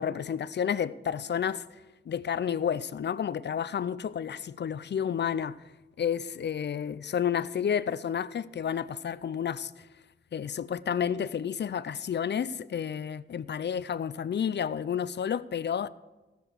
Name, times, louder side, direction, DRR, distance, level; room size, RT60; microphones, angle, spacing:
voice 1, 0.0-1.8 2.1-5.6 6.0-9.9 10.3-15.9, left 8 dB, 60° left, 0.5 m, -31 dB
15.0 x 6.9 x 6.3 m
wide cardioid pair, 100°, 21 cm